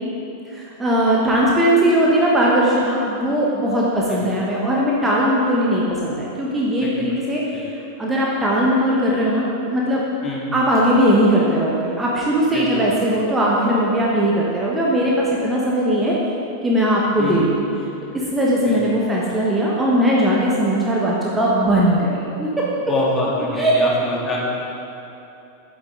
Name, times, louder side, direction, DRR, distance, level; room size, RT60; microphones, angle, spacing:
voice 1, 0.5-7.7 8.0-10.0 10.5-16.2 16.6-17.6 18.1-22.9 23.6-23.7, equal, 10° right, -5 dB, 1.4 m, -19 dB
voice 2, 22.9-24.4, left 2 dB, 20° left, -4 dB, 2.2 m, -25 dB
11.0 x 8.9 x 3.9 m, 2.8 s
figure-of-eight pair, 90°, 0 cm